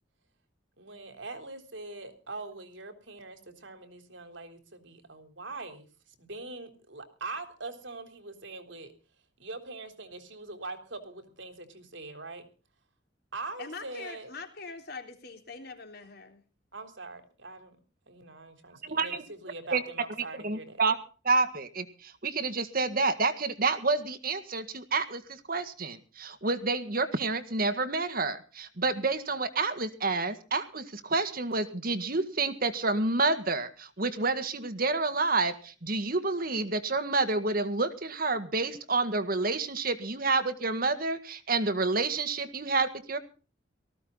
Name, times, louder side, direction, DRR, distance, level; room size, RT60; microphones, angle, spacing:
voice 1, 0.8-5.9 6.2-8.9 9.4-12.4 13.3-14.3 16.7-17.8 18.1-20.8, right 3 dB, 75° right, 7 dB, 3.7 m, -42 dB
voice 2, 13.6-16.4, left 4 dB, 55° left, 5 dB, 3.7 m, -43 dB
voice 3, 18.8-19.2 19.7-19.8 20.4-21.0 21.2-43.2, right 3 dB, 50° right, 10 dB, 1.9 m, -29 dB
18.5 x 15.0 x 4.0 m, 0.36 s
head